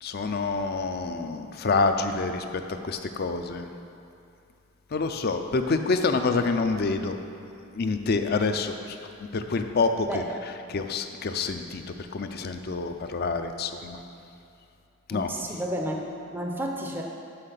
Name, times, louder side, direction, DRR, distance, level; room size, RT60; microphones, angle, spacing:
voice 1, 0.0-2.4 2.8-3.7 4.9-7.2 7.7-8.7 9.3-11.8 12.1-14.0 15.1-15.3, left 4 dB, 45° left, 7 dB, 0.4 m, -27 dB
voice 2, 15.1-16.0 16.3-17.0, right 1 dB, 10° right, 0 dB, 0.5 m, -31 dB
6.3 x 5.7 x 6.7 m, 2.6 s
head